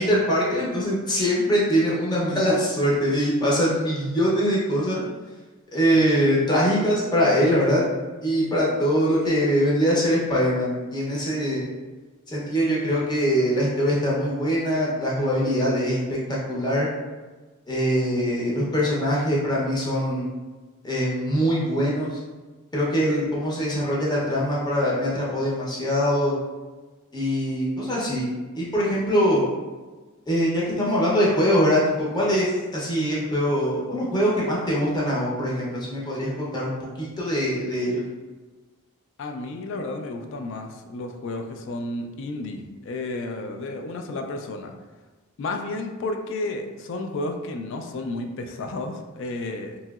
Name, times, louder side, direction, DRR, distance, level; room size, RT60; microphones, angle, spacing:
voice 1, 0.0-5.0 5.7-7.8 8.2-11.6 12.3-16.2 16.5-16.9 17.7-20.3 20.8-22.1 22.7-26.4 27.1-28.3 28.5-29.4 30.3-38.0, equal, 20° left, -6 dB, 0.7 m, -23 dB
voice 2, 39.2-44.7 45.4-49.8, left 2 dB, 60° left, 4 dB, 0.3 m, -32 dB
3.0 x 2.7 x 2.3 m, 1.3 s
head